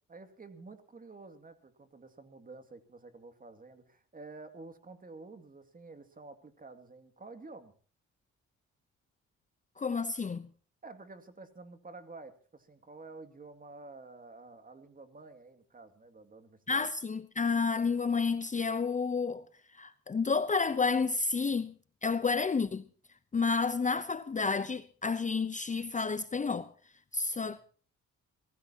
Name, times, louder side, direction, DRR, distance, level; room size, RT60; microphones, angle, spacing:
voice 1, 0.1-7.7 10.8-16.9 27.4-27.6, right 3 dB, 30° right, 2.4 m, -50 dB
voice 2, 9.8-10.5 16.7-19.5 19.7-21.7 22.0-22.8 23.3-26.7 27.1-27.6, left 4 dB, 25° left, 0.8 m, -30 dB
25.0 x 16.5 x 2.9 m
cardioid pair, 90°, 30 cm